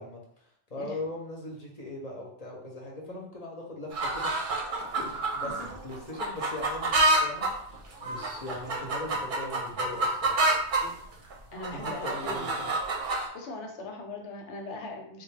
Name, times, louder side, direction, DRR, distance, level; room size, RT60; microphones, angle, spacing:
voice 1, 0.0-4.4 4.9-10.4 11.7-12.7, left 2 dB, 45° left, -1 dB, 0.6 m, -40 dB
sound 1, 3.9-10.9 11.3-13.3, right 2 dB, 50° right, 0.7 m, -28 dB
voice 2, 11.5-12.7 13.3-15.2, left 2 dB, 75° left, 3 dB, 1.0 m, -40 dB
3.5 x 2.2 x 3.2 m, 0.67 s
omnidirectional pair, 1.2 m